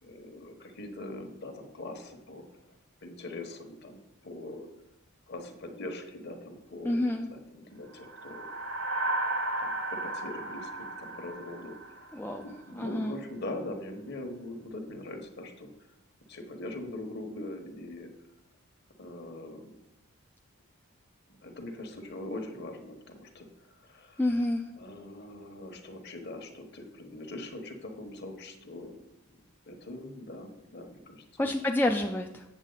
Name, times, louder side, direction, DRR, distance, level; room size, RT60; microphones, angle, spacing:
voice 1, 0.0-2.4 3.0-4.7 5.3-8.5 9.6-12.1 12.4-15.7 16.3-18.1 19.0-19.7 21.4-23.5 23.8-24.2 24.8-28.9 29.7-31.5, left 1 dB, 50° left, 5 dB, 1.2 m, -42 dB
voice 2, 6.8-7.3 12.1-12.5 12.8-13.2 24.2-24.6 31.4-32.4, left 1 dB, 10° left, 2 dB, 0.3 m, -28 dB
sound 1, 8.0-12.5, right 2 dB, 70° right, 1.3 m, -34 dB
8.1 x 7.2 x 3.9 m, 0.89 s
head